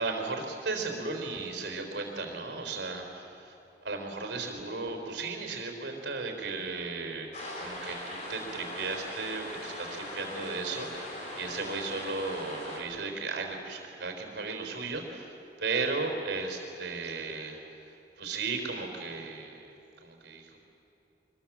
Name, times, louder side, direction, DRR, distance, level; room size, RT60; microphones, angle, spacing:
voice 1, 0.0-7.3 7.6-19.8 20.0-20.6, right 3 dB, 70° right, 4 dB, 3.9 m, -35 dB
sound 1, 7.3-12.8, left 1 dB, 40° left, 4.2 m, -40 dB
25.0 x 22.0 x 7.3 m, 2.9 s
head